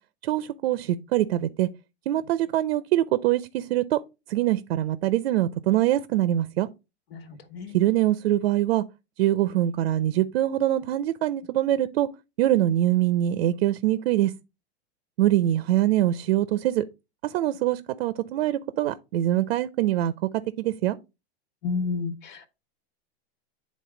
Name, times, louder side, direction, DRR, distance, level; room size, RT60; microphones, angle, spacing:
voice 1, 0.2-1.7 2.1-4.0 4.3-6.7 7.7-8.8 9.2-12.1 12.4-14.3 15.2-16.9 17.2-20.1 20.6-21.0, right 13 dB, 70° right, 0.7 m, -23 dB
voice 2, 7.1-7.8 21.6-22.5, left 4 dB, 60° left, 1.5 m, -31 dB
9.3 x 3.8 x 3.8 m
hypercardioid pair, 125°, 32 cm